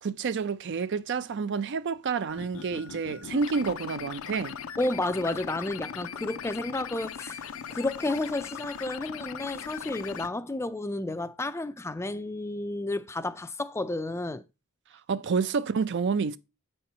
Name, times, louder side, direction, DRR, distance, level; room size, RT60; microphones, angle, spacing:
voice 1, 0.0-4.6 15.1-16.4, right 5 dB, 55° right, 0.4 m, -29 dB
sound 1, 2.3-10.3, left 7 dB, 65° left, 0.5 m, -39 dB
voice 2, 4.8-14.4, left 2 dB, 10° left, 0.4 m, -31 dB
7.5 x 4.4 x 5.5 m
head